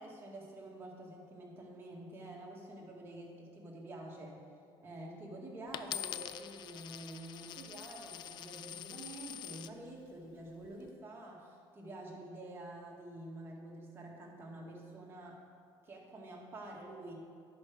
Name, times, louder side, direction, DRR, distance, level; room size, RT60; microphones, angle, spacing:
voice 1, 0.0-4.4 4.8-15.4 15.8-17.1, right 1 dB, 25° right, -2 dB, 1.9 m, -48 dB
Coin (dropping), 5.7-9.7 10.4-10.9, left 11 dB, 50° left, 0.4 m, -45 dB
10.5 x 4.7 x 6.4 m, 2.2 s
cardioid pair, 120°, 10 cm